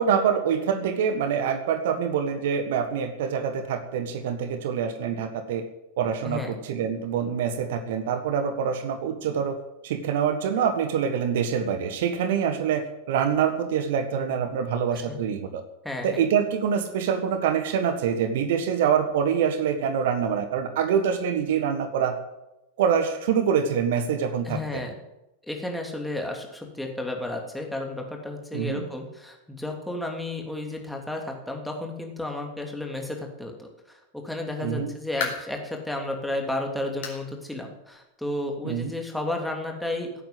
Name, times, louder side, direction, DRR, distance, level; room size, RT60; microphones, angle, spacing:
voice 1, 0.0-5.6 6.0-9.6 9.8-15.6 16.0-22.1 22.8-24.8 28.5-28.8 34.6-34.9 38.6-38.9, right 7 dB, 55° right, 8 dB, 1.5 m, -25 dB
voice 2, 6.2-6.6 14.9-15.2 15.8-16.3 24.4-25.0 25.4-40.1, left 2 dB, ahead, 1 dB, 2.9 m, -32 dB
sound 1, 35.2-35.6 36.1-36.2 37.0-37.3 37.6-37.7 38.2-38.3 39.4-39.5, left 6 dB, 55° left, 4.3 m, -34 dB
16.5 x 9.1 x 8.0 m, 0.93 s
figure-of-eight pair, 90°, 0 cm